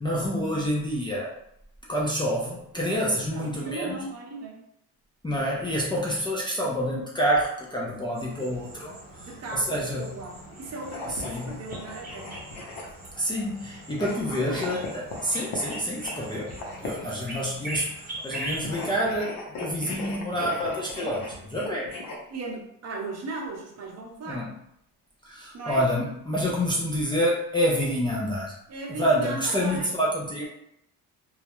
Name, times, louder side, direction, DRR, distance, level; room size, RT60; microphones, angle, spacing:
voice 1, 0.0-1.3 1.9-4.0 5.2-10.1 11.2-11.6 13.1-17.9 18.2-21.9 24.3-24.5 25.3-28.5 28.9-30.5, equal, 15° left, -5 dB, 0.4 m, -28 dB
voice 2, 3.2-4.6 9.2-12.4 14.4-14.8 22.3-24.5 25.5-25.8 28.7-29.9 30.4-30.5, right 3 dB, 45° right, 0 dB, 0.7 m, -37 dB
sound 1, 8.1-19.0, right 1 dB, 25° right, 0.9 m, -41 dB
sound 2, 10.8-13.1 13.9-17.2 18.2-22.2, left 2 dB, 65° left, 0.7 m, -38 dB
2.3 x 2.0 x 2.9 m, 0.76 s
cardioid pair, 115°, 36 cm